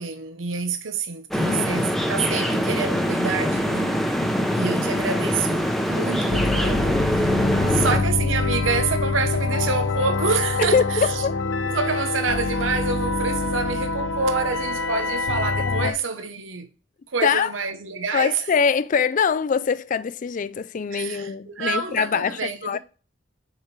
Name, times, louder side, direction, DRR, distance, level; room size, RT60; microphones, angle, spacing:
voice 1, 0.0-4.0 4.5-11.2 11.6-16.7 17.1-18.4 20.9-22.8, right 5 dB, 80° right, 0.8 m, -27 dB
sound 1, 1.3-8.0, equal, ahead, 0.7 m, -23 dB
sound 2, 6.3-15.9, left 3 dB, 80° left, 0.6 m, -25 dB
voice 2, 7.4-8.0 10.7-10.8 11.2-11.3 15.6-16.0 17.2-17.5 18.1-22.8, left 6 dB, 40° left, 0.4 m, -24 dB
6.6 x 4.5 x 3.2 m
head